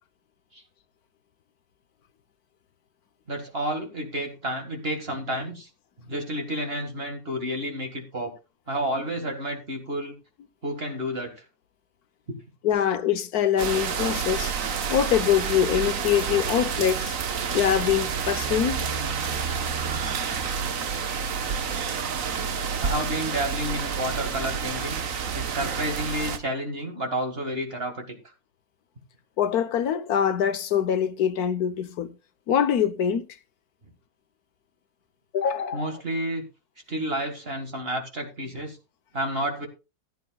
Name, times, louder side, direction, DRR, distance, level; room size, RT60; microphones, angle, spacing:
voice 1, 3.3-5.7 6.1-8.3 8.7-10.1 10.6-11.4 12.3-12.4 12.7-12.8 16.3-16.7 22.8-25.0 25.3-28.2 35.7-36.4 36.9-38.8 39.1-39.7, equal, 40° right, 2.0 m, -30 dB
voice 2, 12.6-14.5 14.9-17.2 17.5-18.9 29.4-32.1 32.5-33.2 35.3-36.0, left 9 dB, 70° left, 1.4 m, -24 dB
sound 1, 13.6-26.4, right 6 dB, 60° right, 1.5 m, -29 dB
15.0 x 11.5 x 2.3 m
omnidirectional pair, 1.7 m